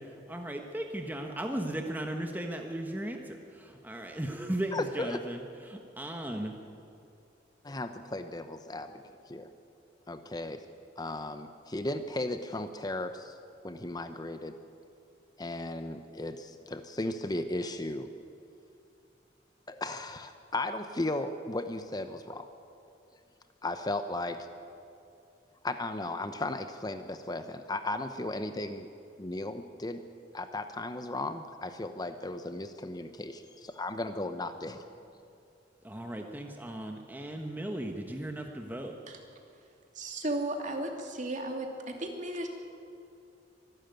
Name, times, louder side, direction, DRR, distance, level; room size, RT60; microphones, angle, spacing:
voice 1, 0.3-6.5 35.8-38.9, right 1 dB, 10° right, 3 dB, 1.2 m, -36 dB
voice 2, 4.7-5.2 7.6-9.5 10.1-10.6 11.0-13.3 13.6-14.6 15.4-18.1 19.7-22.5 23.6-24.5 25.6-28.9 29.2-30.0 30.3-34.8, left 2 dB, 20° left, 9 dB, 0.8 m, -36 dB
voice 3, 39.9-42.5, right 1 dB, 45° right, 3 dB, 2.7 m, -35 dB
24.5 x 12.5 x 9.3 m, 2.6 s
head